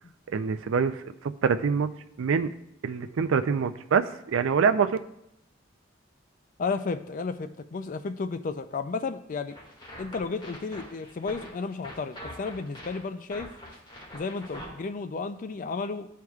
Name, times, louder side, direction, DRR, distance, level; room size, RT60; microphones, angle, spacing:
voice 1, 0.3-1.9 2.2-2.5 2.8-5.0, right 6 dB, 80° right, 10 dB, 0.4 m, -25 dB
voice 2, 6.6-9.6 10.0-13.5 14.1-16.1, left 4 dB, 40° left, 10 dB, 0.4 m, -33 dB
sound 1, 9.5-14.7, equal, 25° left, 2.0 m, -43 dB
13.0 x 4.6 x 2.4 m, 0.80 s
head